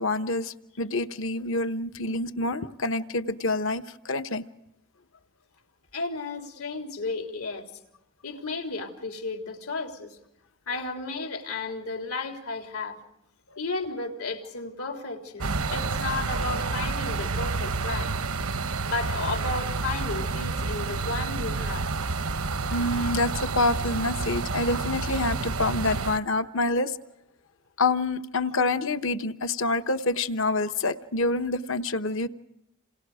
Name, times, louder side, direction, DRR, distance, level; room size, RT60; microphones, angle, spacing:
voice 1, 0.0-4.4 22.7-27.0 27.8-32.3, left 2 dB, 65° left, 10 dB, 1.1 m, -27 dB
voice 2, 5.9-7.7 8.2-10.2 10.7-13.0 13.6-18.1 18.8-21.8, left 3 dB, 80° left, 3 dB, 3.7 m, -33 dB
sound 1, 15.4-26.2, right 3 dB, 85° right, 1.0 m, -29 dB
30.0 x 28.0 x 5.0 m, 0.86 s
head